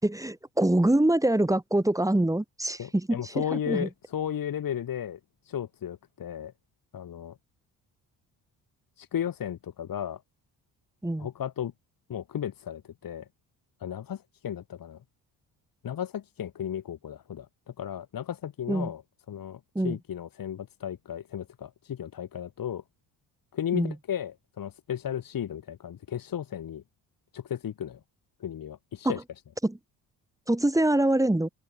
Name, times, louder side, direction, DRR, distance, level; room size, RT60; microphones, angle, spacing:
voice 1, 0.0-3.9 11.0-11.3 18.7-18.9 19.7-20.0 23.7-23.9 29.0-29.1 29.6-29.8 30.5-31.5, right 1 dB, 10° right, 5.0 m, -25 dB
voice 2, 2.8-5.2 5.4-6.5 6.9-7.4 9.0-10.2 11.2-11.7 12.1-13.3 13.8-15.0 15.8-19.0 19.3-22.8 23.5-26.8 27.3-28.0 28.4-29.2, left 9 dB, 55° left, 5.6 m, -34 dB
open air
cardioid pair, 100°, 40 cm